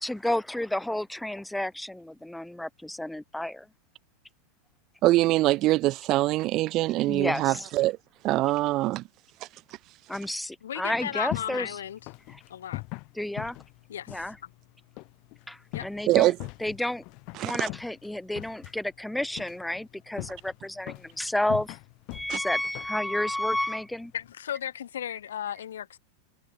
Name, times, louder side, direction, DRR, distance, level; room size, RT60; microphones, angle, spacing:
voice 1, 0.0-3.7 7.1-7.7 10.1-11.8 12.3-12.4 13.1-13.6 14.1-14.4 15.5-16.3 16.6-17.0 17.4-21.8 22.1-24.1, left 1 dB, 5° left, 2.4 m, -31 dB
voice 2, 5.0-8.0 8.2-9.0 16.1-16.3 17.3-17.7 22.3-22.4, right 17 dB, 35° right, 0.7 m, -23 dB
voice 3, 10.6-12.0 12.5-12.8 13.9-14.2 15.7-15.9 24.1-26.0, left 10 dB, 65° left, 0.7 m, -35 dB
sound 1, 10.9-24.3, left 28 dB, 45° left, 2.6 m, -43 dB
figure-of-eight pair, 90°, 0 cm